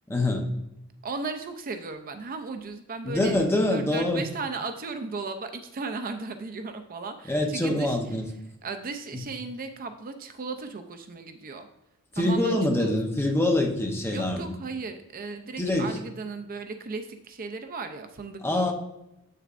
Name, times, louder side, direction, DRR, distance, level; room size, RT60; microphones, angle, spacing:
voice 1, 0.1-0.5 3.0-4.2 7.3-8.3 12.1-14.5 15.6-15.9 18.4-18.7, left 1 dB, 10° left, 2 dB, 0.8 m, -25 dB
voice 2, 1.0-3.4 3.7-8.0 8.6-11.7 12.1-12.9 14.1-18.7, right 3 dB, 40° right, 8 dB, 0.5 m, -36 dB
8.4 x 6.6 x 2.5 m, 0.90 s
head